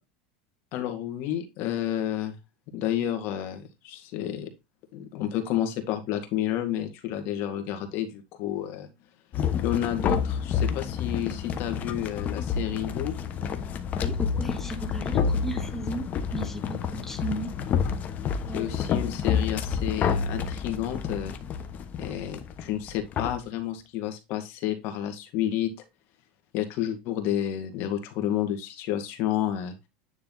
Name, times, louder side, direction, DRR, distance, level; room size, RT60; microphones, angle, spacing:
voice 1, 0.7-2.3 2.7-4.5 4.9-8.9 9.6-13.1 18.5-21.3 22.0-25.7 26.5-29.7, left 11 dB, 55° left, 7 dB, 1.8 m, -30 dB
sound 1, 9.3-23.4, left 7 dB, 35° left, 1.1 m, -29 dB
voice 2, 14.0-16.1 16.3-17.5 18.5-18.7, right 2 dB, 5° left, 3 dB, 1.5 m, -35 dB
9.8 x 3.4 x 3.9 m, 0.24 s
supercardioid pair, 125°, 5 cm